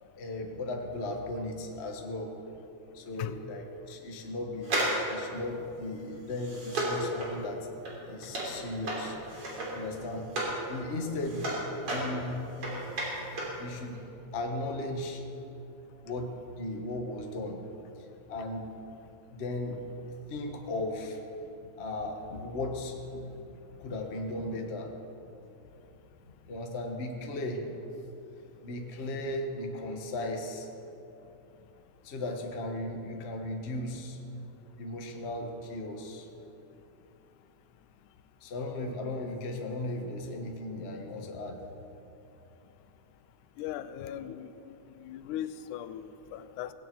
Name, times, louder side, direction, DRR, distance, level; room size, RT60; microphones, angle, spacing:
voice 1, 0.0-2.3 2.9-7.7 8.1-9.2 9.7-10.3 10.7-11.5 11.9-12.5 13.6-14.0 14.3-15.2 16.0-17.6 18.3-18.7 19.3-19.8 20.3-21.2 21.7-24.9 26.5-27.6 28.6-30.7 32.0-34.2 34.8-36.3 38.4-41.6, left 2 dB, 40° left, 2 dB, 0.9 m, -36 dB
sound 1, 4.6-10.6 10.9-13.6 13.9-14.0, right 1 dB, 50° right, 4.2 m, -34 dB
voice 2, 43.6-44.7 45.0-46.7, left 11 dB, 90° left, 12 dB, 2.1 m, -38 dB
18.0 x 16.5 x 4.7 m, 2.9 s
omnidirectional pair, 3.4 m